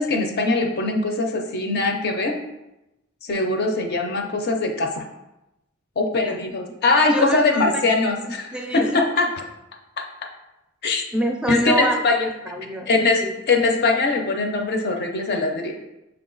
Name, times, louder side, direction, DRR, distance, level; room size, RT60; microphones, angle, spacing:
voice 1, 0.0-2.4 3.3-5.0 6.0-9.3 10.0-10.1 10.8-11.0 11.5-12.2 12.9-15.8, left 3 dB, 50° left, 3 dB, 0.5 m, -21 dB
voice 2, 6.2-6.6 7.1-7.8 8.2-9.0 10.9-13.4, right 1 dB, 5° right, 3 dB, 0.4 m, -27 dB
5.7 x 2.3 x 3.8 m, 0.93 s
head